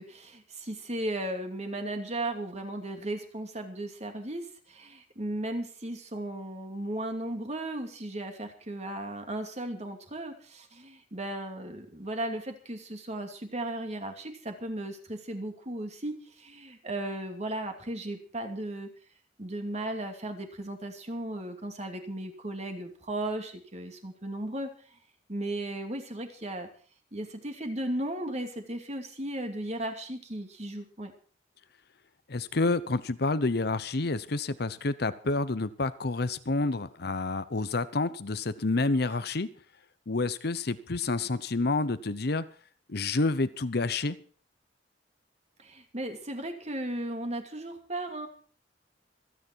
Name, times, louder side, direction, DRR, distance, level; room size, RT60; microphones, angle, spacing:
voice 1, 0.0-18.9 19.4-24.7 25.3-26.7 27.1-31.1 45.6-48.3, right 1 dB, 40° right, 5 dB, 2.7 m, -36 dB
voice 2, 32.3-39.5 40.1-42.4 42.9-44.2, left 3 dB, 60° left, 14 dB, 0.9 m, -29 dB
26.0 x 9.6 x 4.6 m, 0.43 s
head